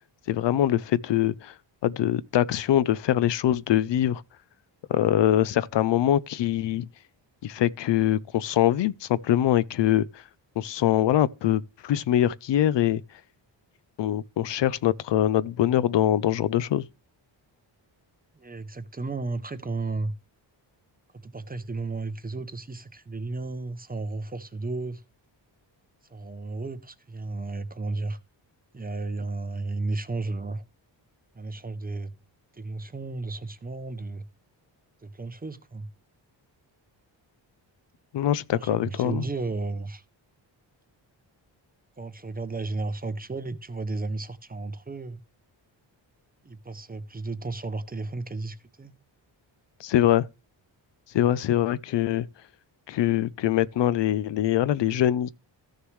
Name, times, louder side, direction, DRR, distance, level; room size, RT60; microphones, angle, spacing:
voice 1, 0.3-1.5 1.8-4.2 4.9-6.9 7.4-10.2 10.6-13.0 14.0-16.8 38.1-39.2 49.8-50.3 51.1-52.3 52.9-55.3, left 12 dB, 65° left, 0.5 m, -23 dB
voice 2, 18.4-20.1 21.2-25.0 26.1-28.2 28.7-30.6 31.3-32.1 32.5-34.2 35.0-35.9 38.5-40.0 42.0-45.2 46.4-48.9, right 3 dB, 20° right, 0.6 m, -33 dB
14.5 x 6.5 x 3.1 m
wide cardioid pair, 135°, 46 cm